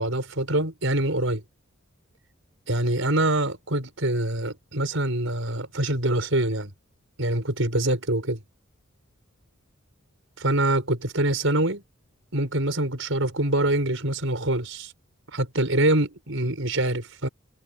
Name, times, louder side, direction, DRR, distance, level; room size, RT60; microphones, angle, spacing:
voice 1, 0.0-1.4 2.7-6.7 7.2-8.4 10.4-11.8 12.3-14.9 15.3-17.3, right 1 dB, 65° right, 6.6 m, -25 dB
head